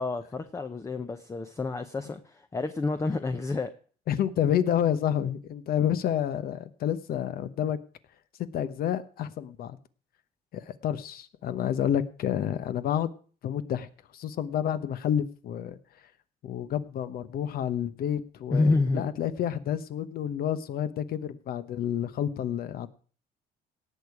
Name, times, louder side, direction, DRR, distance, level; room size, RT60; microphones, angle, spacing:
voice 1, 0.0-3.7 18.5-19.1, left 3 dB, 20° left, 0.7 m, -28 dB
voice 2, 4.1-7.8 8.5-9.8 10.5-13.1 13.4-15.8 16.4-22.9, left 9 dB, 65° left, 1.0 m, -29 dB
18.0 x 6.7 x 4.8 m
cardioid pair, 110°, 17 cm